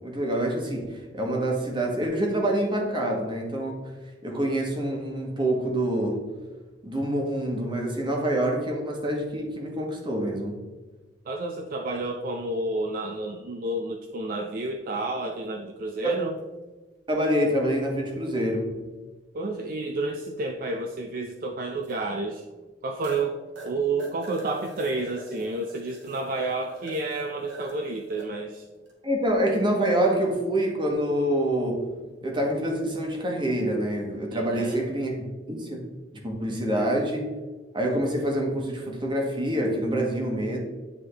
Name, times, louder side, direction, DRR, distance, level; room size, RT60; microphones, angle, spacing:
voice 1, 0.0-3.9 4.2-6.2 6.8-10.6 16.0-16.2 17.1-18.8 29.0-31.9 32.2-35.8 36.2-37.3 37.7-40.6, right 1 dB, 25° right, 0 dB, 1.1 m, -26 dB
voice 2, 11.3-16.4 19.3-22.4 22.8-23.4 23.6-28.7 34.3-34.8, right 2 dB, 50° right, 3 dB, 0.4 m, -30 dB
sound 1, 16.1-16.2 18.7-18.8 21.8-22.0 22.5-22.6 23.0-23.3 23.5-28.3 28.8-28.9 29.6-30.0 33.6-33.8, right 2 dB, 75° right, 1.4 m, -45 dB
9.6 x 3.6 x 3.3 m, 1.3 s
head